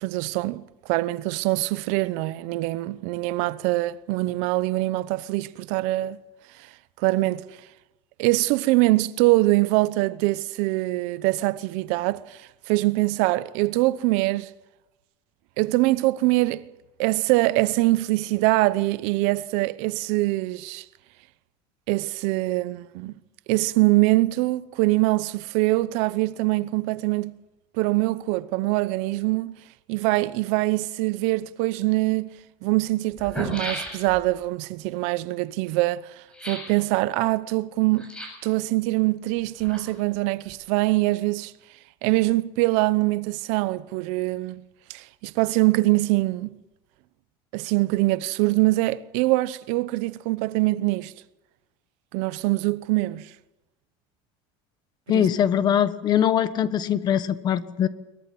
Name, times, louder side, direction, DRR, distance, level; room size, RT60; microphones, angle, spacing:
voice 1, 0.0-6.2 7.0-7.4 8.2-14.5 15.6-16.7 17.0-20.8 21.9-23.1 23.5-27.3 27.8-29.6 29.9-32.3 32.6-36.1 36.4-38.1 38.4-41.5 42.0-44.6 44.9-46.6 47.5-51.1 52.1-53.3 55.1-55.3, right 20 dB, 65° right, 0.8 m, -23 dB
sound 1, 31.8-31.9 32.8-32.9 33.1-34.3 36.3-36.8 38.0-38.5 39.4-40.2 40.4-40.5, equal, 10° left, 7.2 m, -35 dB
voice 2, 55.1-57.9, left 9 dB, 35° left, 1.2 m, -22 dB
22.5 x 21.0 x 7.8 m
cardioid pair, 150°, 13 cm